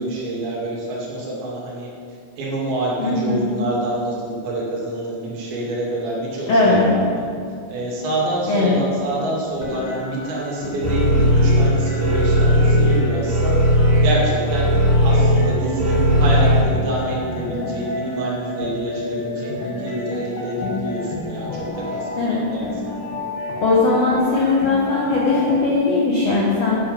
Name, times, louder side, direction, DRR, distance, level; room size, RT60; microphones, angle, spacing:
voice 1, 0.0-1.9 2.4-6.8 7.2-7.3 7.7-14.7 15.0-22.7, right 1 dB, 80° right, -5 dB, 4.6 m, -27 dB
voice 2, 3.0-3.4 6.5-6.9 8.5-8.8 22.2-22.5 23.6-26.8, left 3 dB, 80° left, -5 dB, 1.4 m, -18 dB
sound 1, 9.6-25.6, left 2 dB, 65° left, 2.7 m, -31 dB
sound 2, 10.8-16.6, equal, 50° right, 2.8 m, -17 dB
10.5 x 6.0 x 6.9 m, 2.3 s
omnidirectional pair, 5.1 m